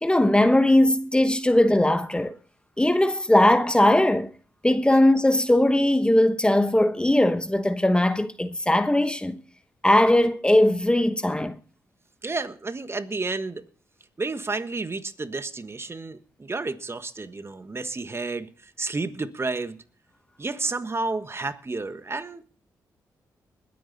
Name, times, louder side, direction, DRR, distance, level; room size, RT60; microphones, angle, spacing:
voice 1, 0.0-2.3 2.8-4.3 4.6-9.4 9.8-11.6, left 1 dB, 10° left, 1.1 m, -20 dB
voice 2, 12.2-13.6 14.2-18.5 18.8-19.8 20.4-22.4, right 3 dB, 35° right, 1.4 m, -31 dB
21.0 x 8.9 x 4.1 m
supercardioid pair, 50°, 8 cm